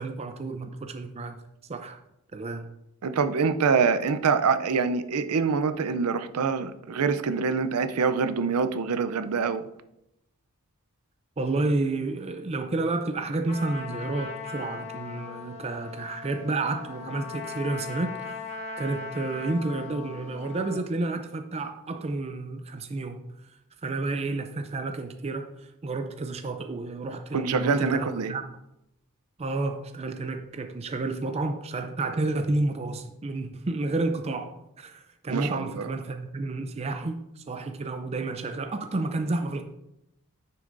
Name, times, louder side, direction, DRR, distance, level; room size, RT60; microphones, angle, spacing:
voice 1, 0.0-1.4 1.7-2.0 2.3-2.7 11.4-18.4 18.8-23.5 23.8-28.4 29.4-39.6, right 2 dB, 30° right, 0.4 m, -30 dB
voice 2, 3.0-9.7 27.3-28.3 35.3-35.9, right 5 dB, 80° right, 0.5 m, -25 dB
Trumpet, 13.5-20.8, left 4 dB, 30° left, 0.9 m, -39 dB
9.4 x 6.8 x 2.6 m
head